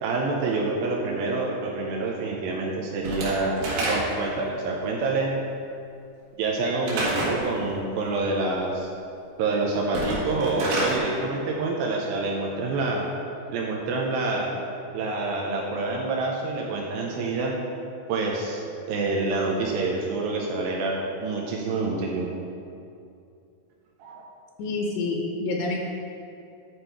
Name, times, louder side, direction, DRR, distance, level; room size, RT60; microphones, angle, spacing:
voice 1, 0.0-5.4 6.4-8.9 9.4-13.1 13.5-14.6 14.9-17.6 18.1-22.3 24.0-24.3, right 3 dB, 80° right, -1 dB, 2.2 m, -27 dB
Slam / Wood, 3.0-4.3 6.8-7.4 9.8-11.0, right 2 dB, 65° right, 3.1 m, -28 dB
voice 2, 24.6-25.8, left 3 dB, 80° left, 0 dB, 2.9 m, -27 dB
11.0 x 4.3 x 4.6 m, 2.6 s
omnidirectional pair, 4.8 m